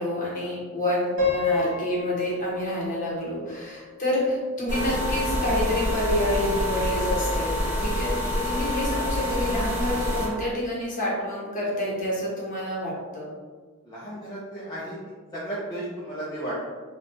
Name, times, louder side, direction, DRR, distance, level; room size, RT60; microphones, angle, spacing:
voice 1, 0.0-13.3, left 1 dB, 35° left, -5 dB, 0.8 m, -28 dB
Piano, 1.2-4.2, left 4 dB, 60° right, 1.0 m, -29 dB
sound 1, 4.7-10.3, left 1 dB, 35° right, 1.1 m, -27 dB
voice 2, 13.8-15.0 15.3-16.7, right 1 dB, 15° left, -9 dB, 0.4 m, -34 dB
3.7 x 2.3 x 2.5 m, 1.5 s
head